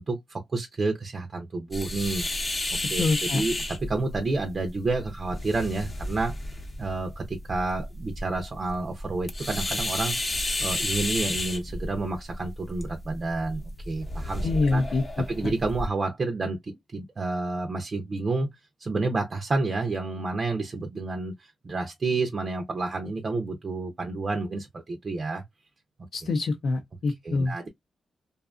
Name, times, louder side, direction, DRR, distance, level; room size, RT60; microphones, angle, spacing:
voice 1, 0.0-2.6 2.8-6.3 6.8-10.2 10.6-15.0 15.3-18.5 18.8-25.4 27.2-27.7, right 3 dB, 40° right, 0.5 m, -30 dB
sound 1, 1.7-15.9, left 1 dB, 30° left, 0.7 m, -33 dB
voice 2, 3.0-3.4 14.4-15.0 26.1-27.5, left 3 dB, 65° left, 0.6 m, -25 dB
2.6 x 2.3 x 2.3 m
cardioid pair, 90°, 0 cm